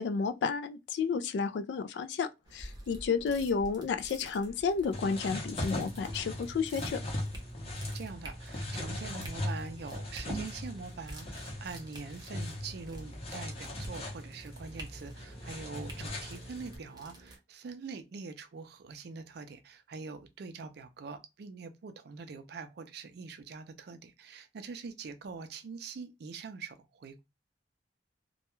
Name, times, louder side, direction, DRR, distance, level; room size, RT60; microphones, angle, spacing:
voice 1, 0.0-7.0, left 5 dB, 70° left, 0.3 m, -31 dB
sound 1, 2.4-17.4, right 1 dB, 25° right, 0.7 m, -49 dB
sound 2, 4.9-16.8, left 1 dB, 35° left, 0.7 m, -39 dB
voice 2, 7.9-27.2, right 4 dB, 65° right, 0.4 m, -44 dB
2.2 x 2.1 x 3.0 m
head